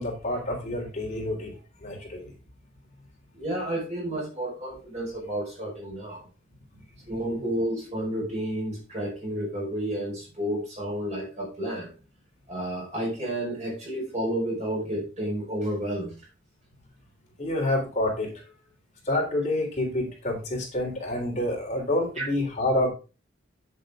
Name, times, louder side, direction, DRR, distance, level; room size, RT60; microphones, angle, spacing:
voice 1, 0.0-1.6 1.8-2.3 6.7-6.8 17.4-18.5 19.1-22.9, left 1 dB, 35° left, 3.6 m, -28 dB
voice 2, 3.3-6.3 7.1-11.9 12.5-16.2 22.2-22.3, right 1 dB, 35° right, 5.3 m, -31 dB
9.2 x 7.8 x 3.8 m
head